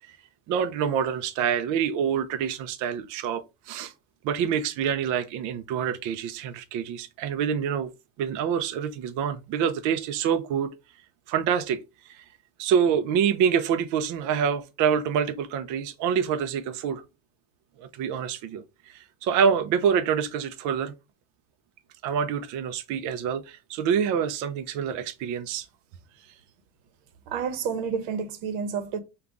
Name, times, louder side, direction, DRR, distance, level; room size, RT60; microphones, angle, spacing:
voice 1, 0.5-3.9 4.2-7.9 8.2-10.7 11.3-11.8 12.0-12.2 12.6-17.0 17.8-20.9 22.0-25.7, right 7 dB, 50° right, 0.5 m, -26 dB
voice 2, 27.3-29.0, right 6 dB, 90° right, 0.9 m, -29 dB
5.1 x 2.3 x 3.5 m
cardioid pair, 165°, 38 cm